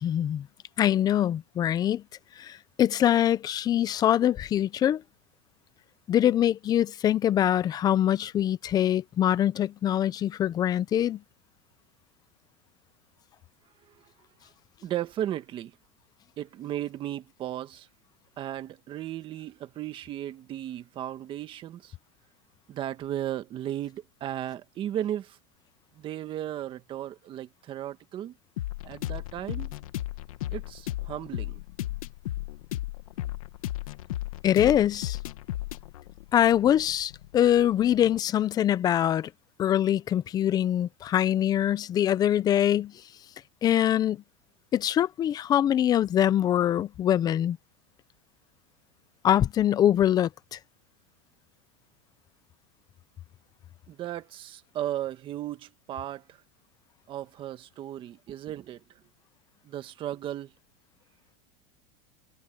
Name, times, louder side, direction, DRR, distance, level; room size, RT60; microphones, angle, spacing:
voice 1, 0.0-0.5 0.8-2.0 2.4-2.5 2.8-5.0 6.1-11.2 34.4-35.2 36.3-39.3 39.6-42.9 43.6-44.2 44.7-47.6 49.2-50.6, left 11 dB, 20° left, 0.6 m, -23 dB
voice 2, 14.8-15.7 16.4-17.9 18.4-21.9 22.7-25.4 25.9-28.4 28.8-29.8 30.5-31.6 53.9-56.4 57.1-58.8 59.6-60.5, right 12 dB, 30° right, 1.6 m, -35 dB
sound 1, 28.6-38.2, left 15 dB, 80° left, 1.7 m, -35 dB
supercardioid pair, 155°, 18 cm